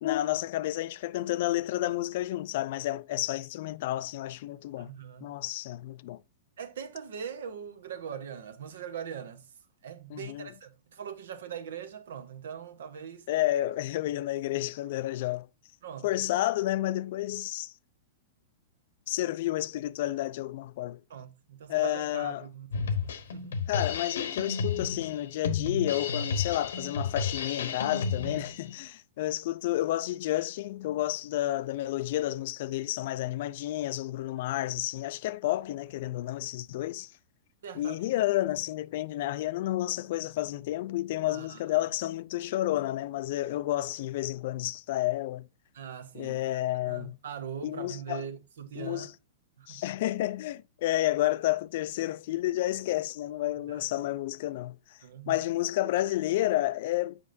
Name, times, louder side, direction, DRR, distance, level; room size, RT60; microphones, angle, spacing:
voice 1, 0.0-4.9 5.2-6.2 10.1-10.5 13.3-15.5 16.0-17.7 19.1-21.0 21.7-22.5 23.7-37.1 37.8-45.5 46.1-47.2 47.6-48.2 48.8-49.1 49.7-55.0 55.3-57.2, left 15 dB, 60° left, 0.3 m, -30 dB
voice 2, 4.8-5.3 6.6-9.5 9.8-13.3 15.8-16.2 21.1-23.0 23.3-23.6 37.6-38.1 41.3-41.6 45.7-46.4 46.9-49.1 49.6-49.8 53.7-53.9 55.0-55.5, right 8 dB, 75° right, 0.9 m, -41 dB
Drum kit, 22.7-28.7, left 5 dB, 80° left, 0.9 m, -32 dB
7.5 x 5.2 x 2.6 m
hypercardioid pair, 120°, 0 cm